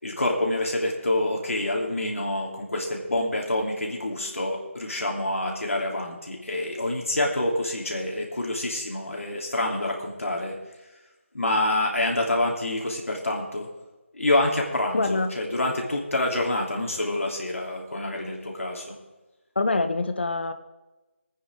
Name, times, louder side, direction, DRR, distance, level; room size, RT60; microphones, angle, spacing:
voice 1, 0.0-10.6 11.3-13.7 14.1-18.9, left 1 dB, 85° left, -1 dB, 3.1 m, -27 dB
voice 2, 14.9-15.3 19.6-20.5, left 3 dB, 50° left, 9 dB, 0.9 m, -25 dB
19.5 x 9.3 x 3.7 m, 1.1 s
figure-of-eight pair, 170°, 7 cm